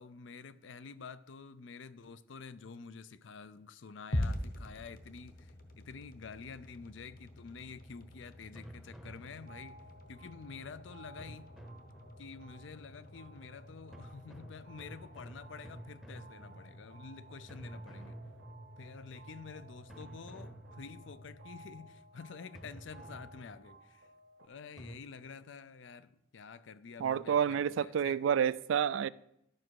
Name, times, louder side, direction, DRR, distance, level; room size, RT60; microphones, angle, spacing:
voice 1, 0.0-9.8 10.1-11.5 12.2-18.2 18.8-24.1 24.4-28.2, left 5 dB, 75° left, 0.5 m, -49 dB
sound 1, 4.1-22.3, left 1 dB, 45° left, 1.0 m, -46 dB
sound 2, 8.5-9.9 11.2-12.5 13.9-17.0 17.5-19.0 19.9-21.3 22.5-23.9 24.8-25.0, right 1 dB, ahead, 0.7 m, -51 dB
sound 3, 9.5-24.5, right 3 dB, 60° right, 0.9 m, -58 dB
voice 2, 27.0-29.1, right 8 dB, 80° right, 0.3 m, -29 dB
12.0 x 6.1 x 4.7 m
head